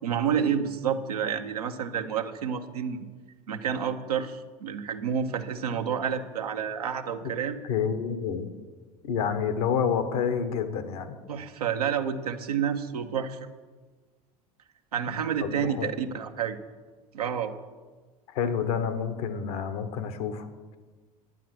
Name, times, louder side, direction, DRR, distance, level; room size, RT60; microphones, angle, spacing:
voice 1, 0.0-3.1 3.5-7.6 11.3-13.5 14.9-16.6 17.1-17.5, right 8 dB, 90° right, 5 dB, 0.8 m, -29 dB
voice 2, 7.6-8.5 9.0-11.1 15.4-15.9 18.3-20.5, left 7 dB, 70° left, 9 dB, 1.2 m, -28 dB
10.5 x 9.2 x 6.1 m, 1.4 s
hypercardioid pair, 75°, 19 cm